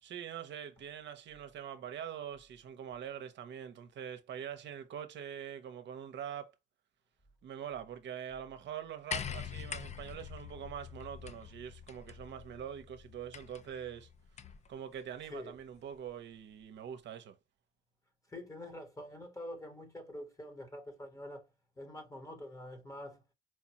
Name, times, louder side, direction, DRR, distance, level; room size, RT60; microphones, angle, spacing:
voice 1, 0.0-6.5 7.4-14.1 14.7-17.3, right 9 dB, 65° right, 0.7 m, -44 dB
sound 1, 9.1-14.7 15.8-15.9, left 7 dB, 35° left, 0.4 m, -44 dB
voice 2, 18.3-21.5 21.8-23.2, left 1 dB, 15° left, 1.0 m, -46 dB
4.6 x 2.2 x 2.8 m
cardioid pair, 90°, 20 cm